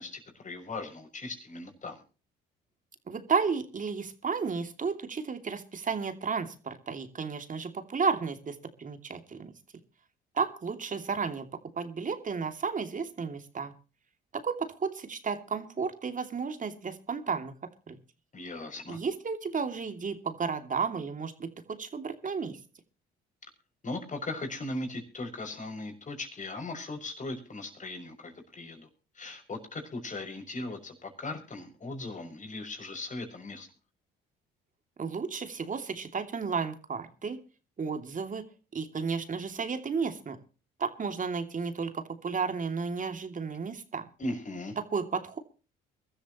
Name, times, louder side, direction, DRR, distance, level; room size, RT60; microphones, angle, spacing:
voice 1, 0.0-2.0 18.3-19.0 23.8-28.9 29.1-33.7 44.2-44.8, left 2 dB, 35° left, 5 dB, 6.4 m, -38 dB
voice 2, 3.1-9.5 10.3-11.5 11.8-13.7 14.3-17.5 17.9-18.0 18.9-21.5 21.8-22.6 35.0-37.4 37.8-38.4 38.7-40.4 40.8-44.1 44.9-45.4, right 5 dB, 40° right, 7 dB, 2.7 m, -33 dB
23.0 x 13.5 x 3.1 m, 0.36 s
supercardioid pair, 70°, 21 cm